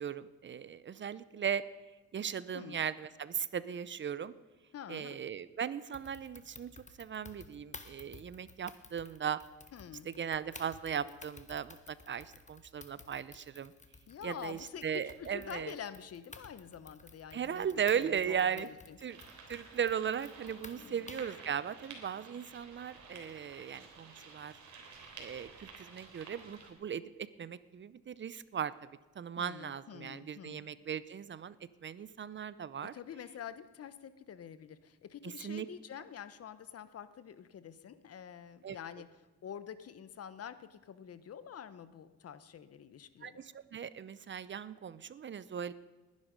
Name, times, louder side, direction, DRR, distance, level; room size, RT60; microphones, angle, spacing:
voice 1, 0.0-1.6 2.1-4.3 4.9-6.7 7.0-9.4 10.0-13.7 14.2-15.7 17.3-18.7 19.0-19.2 19.5-24.6 25.2-28.7 29.2-31.6 31.8-32.9 35.2-35.7 38.6-38.8 43.2-45.7, right 8 dB, 40° right, 17 dB, 0.6 m, -37 dB
voice 2, 4.7-5.2 9.7-10.1 14.1-19.0 20.7-21.1 29.4-30.6 32.8-39.1 39.4-43.4, left 8 dB, 50° left, 13 dB, 1.0 m, -47 dB
sound 1, 5.9-21.4, left 4 dB, 25° left, 1.4 m, -54 dB
sound 2, 19.1-26.7, right 4 dB, 70° right, 3.4 m, -52 dB
20.0 x 10.5 x 5.2 m, 1.2 s
cardioid pair, 90°, 30 cm